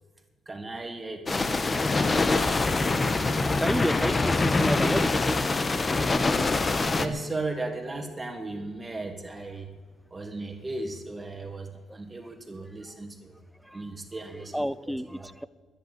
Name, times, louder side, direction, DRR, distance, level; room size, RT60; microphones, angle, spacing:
voice 1, 0.5-1.5 6.8-9.7 10.1-13.4 13.7-15.3, right 2 dB, 20° right, 4 dB, 2.3 m, -36 dB
sound 1, 1.3-7.1, left 3 dB, 30° left, 1.0 m, -24 dB
voice 2, 3.6-5.4 13.6-13.8 14.5-15.5, equal, ahead, 17 dB, 0.5 m, -30 dB
10.5 x 10.5 x 9.2 m, 1.4 s
cardioid pair, 90°, 0 cm